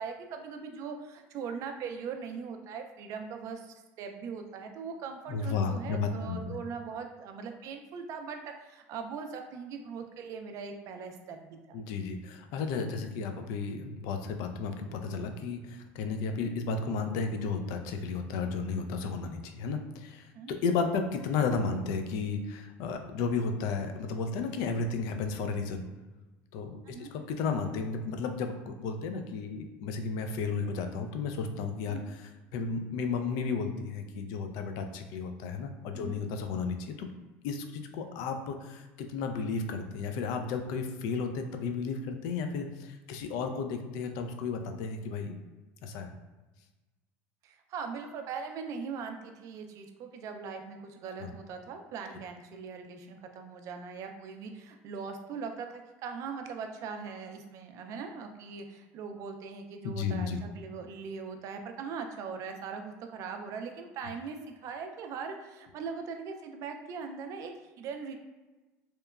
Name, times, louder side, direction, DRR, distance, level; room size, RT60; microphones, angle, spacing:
voice 1, 0.0-11.8 20.3-20.5 26.8-27.1 31.9-32.0 35.9-36.2 47.4-68.1, right 5 dB, 55° right, 5 dB, 0.4 m, -40 dB
voice 2, 5.3-6.6 11.7-25.9 26.5-37.1 37.4-45.4 45.8-46.1 51.2-51.3 59.8-60.4, left 4 dB, 70° left, 6 dB, 0.3 m, -33 dB
2.9 x 2.1 x 2.3 m, 1.2 s
supercardioid pair, 105°, 7 cm